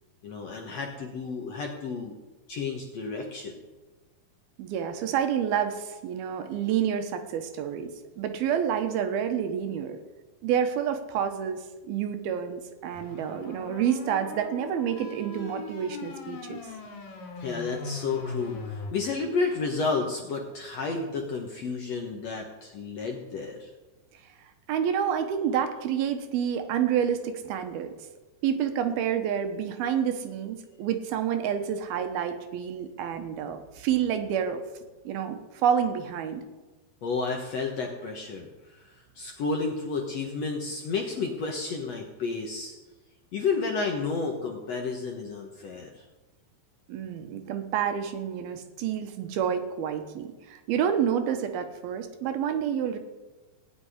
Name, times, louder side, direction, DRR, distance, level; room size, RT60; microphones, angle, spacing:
voice 1, 0.2-2.1 2.5-3.6 17.4-23.7 37.0-42.7 43.3-46.0, left 4 dB, 60° left, 1 dB, 1.8 m, -31 dB
voice 2, 4.6-10.0 10.4-16.6 24.7-27.9 28.4-34.6 35.0-36.4 46.9-53.0, right 8 dB, 75° right, 7 dB, 2.9 m, -28 dB
sound 1, 12.9-18.9, left 4 dB, 80° left, 4.3 m, -39 dB
17.5 x 6.0 x 9.9 m, 1.2 s
omnidirectional pair, 4.5 m